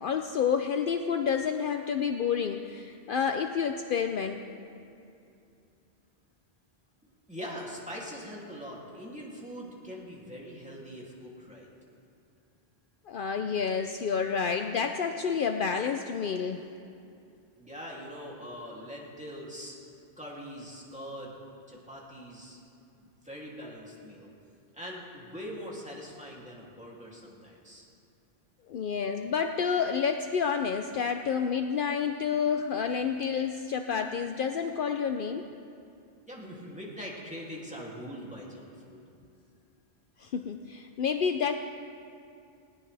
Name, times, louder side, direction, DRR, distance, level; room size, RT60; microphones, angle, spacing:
voice 1, 0.0-4.4 13.1-16.7 28.7-35.5 40.2-41.5, left 6 dB, 60° left, 6 dB, 0.7 m, -29 dB
voice 2, 7.3-11.7 17.6-19.8 20.2-21.4 21.7-22.6 23.0-24.3 24.7-27.8 36.3-39.0, equal, 5° right, -4 dB, 2.7 m, -42 dB
19.5 x 18.5 x 3.4 m, 2.6 s
omnidirectional pair, 1.0 m